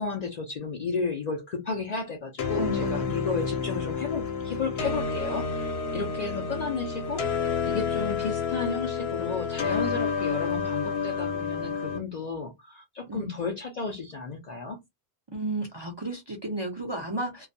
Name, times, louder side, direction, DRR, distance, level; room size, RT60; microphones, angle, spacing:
voice 1, 0.0-14.8, left 4 dB, 55° left, 0.5 m, -33 dB
sound 1, 2.4-12.0, left 5 dB, 70° left, 0.9 m, -29 dB
voice 2, 2.6-3.1 13.1-13.3 15.3-17.5, right 1 dB, 35° right, 0.4 m, -32 dB
2.3 x 2.1 x 2.5 m
omnidirectional pair, 1.1 m